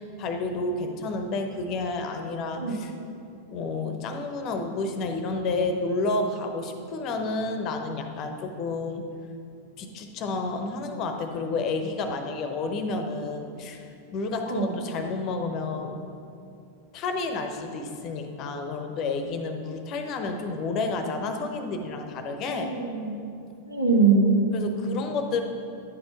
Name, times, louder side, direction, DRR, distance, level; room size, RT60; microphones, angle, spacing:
voice 1, 0.0-2.9 3.5-9.0 9.8-13.9 14.1-16.0 16.9-22.7 24.5-25.4, left 3 dB, 35° left, 6 dB, 0.8 m, -30 dB
voice 2, 14.5-14.9 22.5-23.2 23.7-24.5, right 4 dB, 85° right, 0 dB, 1.0 m, -23 dB
10.0 x 4.4 x 5.8 m, 2.5 s
figure-of-eight pair, 90°, 0 cm